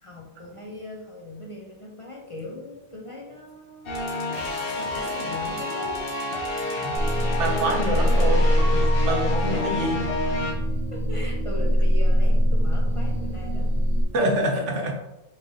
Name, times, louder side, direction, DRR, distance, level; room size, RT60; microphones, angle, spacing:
voice 1, 0.0-4.2 4.8-6.2 6.7-6.8 7.9-8.1 9.3-10.0 10.9-13.7 14.2-14.7, left 1 dB, 35° left, -2 dB, 0.6 m, -39 dB
sound 1, 3.9-10.5, left 2 dB, 55° left, 1.0 m, -29 dB
sound 2, 6.9-14.0, equal, 5° left, 1.1 m, -22 dB
voice 2, 7.4-8.4 8.7-10.0 14.1-14.9, right 1 dB, 85° right, 1 dB, 1.2 m, -26 dB
5.7 x 3.3 x 2.7 m, 0.96 s
omnidirectional pair, 1.2 m